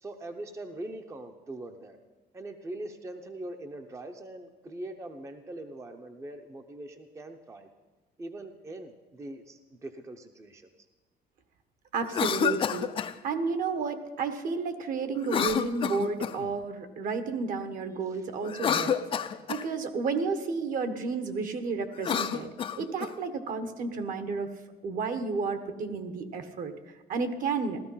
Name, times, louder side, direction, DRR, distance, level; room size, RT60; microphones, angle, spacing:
voice 1, 0.0-2.0 2.3-7.7 8.2-10.7 18.1-18.2, right 1 dB, 15° right, 6 dB, 0.7 m, -42 dB
voice 2, 11.9-12.9 13.2-19.0 19.5-22.5 22.8-24.5 24.8-26.7 27.1-27.8, right 4 dB, 55° right, 9 dB, 1.3 m, -31 dB
Cough, 12.0-13.1 15.2-16.5 18.4-19.7 21.9-23.1, left 8 dB, 30° left, 0.5 m, -29 dB
15.5 x 13.0 x 5.6 m, 1.2 s
cardioid pair, 160°, 17 cm